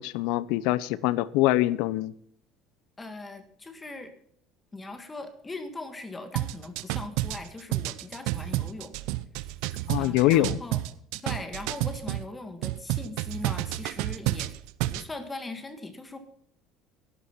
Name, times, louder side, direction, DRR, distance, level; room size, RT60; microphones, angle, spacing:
voice 1, 0.0-2.1 9.9-10.6, left 16 dB, 80° left, 20 dB, 0.7 m, -24 dB
voice 2, 3.0-4.1 4.7-8.9 9.9-10.8 11.2-14.5 14.9-16.2, left 2 dB, 15° left, 9 dB, 1.7 m, -40 dB
sound 1, 6.4-12.3 12.6-15.1, right 16 dB, 80° right, 0.7 m, -30 dB
12.0 x 11.0 x 5.7 m, 0.65 s
cardioid pair, 150°, 0 cm